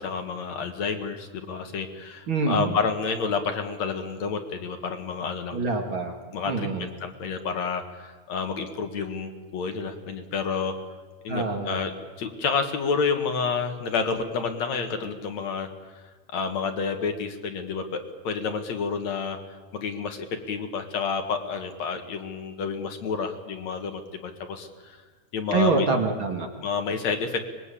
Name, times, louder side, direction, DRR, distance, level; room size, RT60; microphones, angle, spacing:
voice 1, 0.0-5.6 6.3-10.7 11.2-11.9 12.2-15.7 16.3-19.4 19.7-25.0 25.3-25.9 26.6-27.5, left 5 dB, 65° left, 6 dB, 2.9 m, -29 dB
voice 2, 2.3-2.8 5.5-6.1 6.5-6.9 11.3-11.8 25.5-26.5, right 3 dB, 40° right, 3 dB, 2.7 m, -25 dB
24.5 x 22.0 x 8.5 m, 1.4 s
omnidirectional pair, 3.6 m